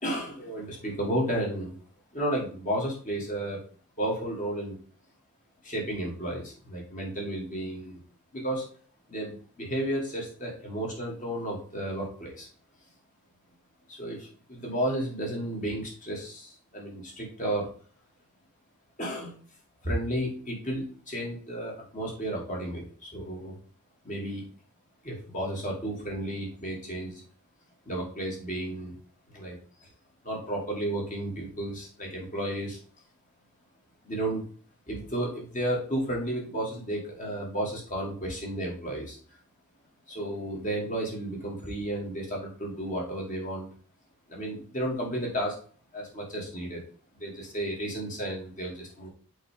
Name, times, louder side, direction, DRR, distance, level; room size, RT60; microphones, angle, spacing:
voice 1, 0.0-1.7 2.1-3.6 4.0-4.8 5.6-8.0 8.3-8.6 9.1-12.5 13.9-17.7 19.0-19.3 19.8-23.6 24.0-24.4 25.0-27.2 27.9-28.9 29.3-29.9 30.2-32.8 34.0-34.5 34.9-39.2 40.1-43.7 44.3-45.6 45.9-46.8 47.1-49.1, right 1 dB, 35° left, -2 dB, 2.9 m, -33 dB
6.3 x 5.1 x 3.6 m, 0.42 s
head